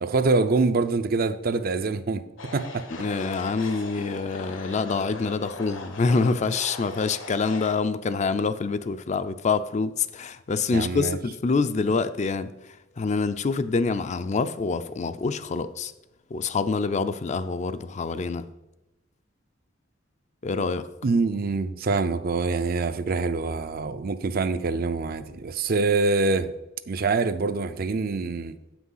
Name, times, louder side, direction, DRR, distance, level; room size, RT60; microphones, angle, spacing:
voice 1, 0.0-2.2 2.5-2.9 10.7-11.2 21.0-26.5 26.9-28.6, right 3 dB, 50° right, 0.5 m, -25 dB
sound 1, 2.4-7.7, left 2 dB, 80° left, 1.3 m, -39 dB
voice 2, 3.0-12.5 13.0-15.9 16.3-18.5 20.4-20.9, left 4 dB, 35° left, 0.4 m, -26 dB
7.9 x 6.0 x 5.6 m
head